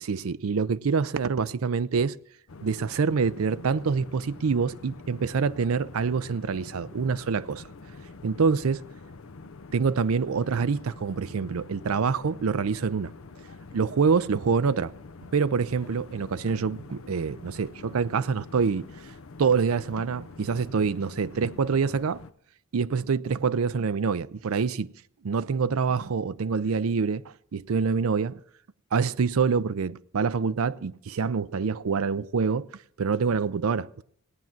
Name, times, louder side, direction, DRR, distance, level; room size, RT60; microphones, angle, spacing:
voice 1, 0.0-2.2 2.6-7.6 8.2-8.8 9.7-13.1 13.7-14.9 15.3-18.9 19.4-22.2 22.7-24.9 25.2-28.4 28.9-32.7 33.0-34.0, right 5 dB, 75° right, 0.5 m, -26 dB
sound 1, 2.5-22.3, left 3 dB, 65° left, 0.7 m, -46 dB
17.5 x 9.3 x 7.3 m
head